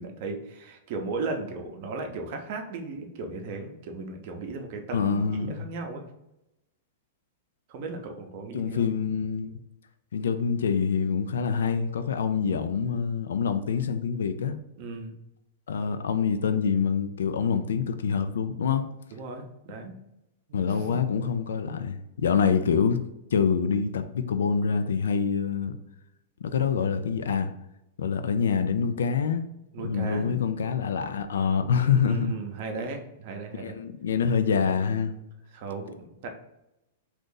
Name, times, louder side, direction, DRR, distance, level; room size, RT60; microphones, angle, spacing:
voice 1, 0.0-6.0 7.7-8.9 14.8-15.1 19.1-20.0 20.5-21.0 29.7-30.3 31.7-33.8 35.5-36.3, right 3 dB, 55° right, 4 dB, 0.6 m, -36 dB
voice 2, 4.9-5.7 8.5-9.6 10.1-14.5 15.7-18.8 20.5-23.0 23.3-25.8 26.4-27.5 28.0-29.4 29.8-32.3 33.6-35.2, left 6 dB, 85° left, 9 dB, 0.3 m, -26 dB
2.6 x 2.5 x 3.7 m, 0.90 s
hypercardioid pair, 130°, 0 cm